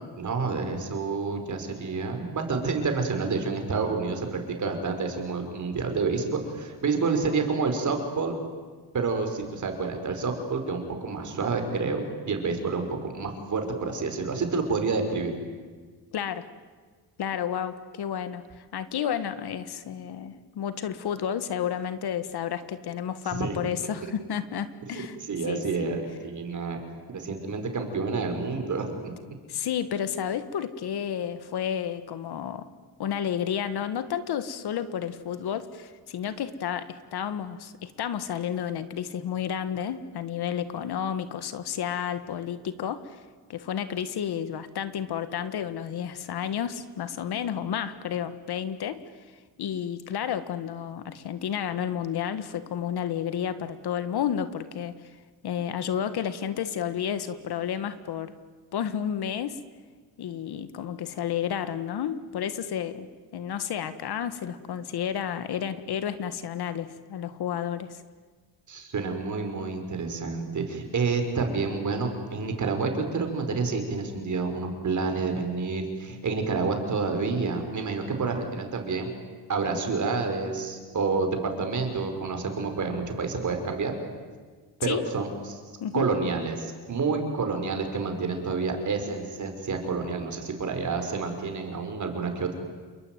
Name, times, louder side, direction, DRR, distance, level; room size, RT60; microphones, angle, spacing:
voice 1, 0.2-8.4 8.9-12.0 12.3-15.3 23.4-23.6 24.9-25.0 25.3-26.8 27.1-29.2 68.7-79.1 79.5-84.0 84.8-85.6 85.9-92.5, right 4 dB, 45° right, 5 dB, 5.3 m, -29 dB
voice 2, 16.1-16.5 17.2-25.2 25.4-26.0 29.5-32.7 33.0-43.2 43.5-49.0 49.6-54.9 55.4-58.3 58.7-59.6 60.2-63.1 63.3-68.0 84.8-85.1 85.8-86.1, left 9 dB, 65° left, 12 dB, 1.7 m, -31 dB
28.5 x 22.5 x 9.4 m, 1.4 s
cardioid pair, 115°, 42 cm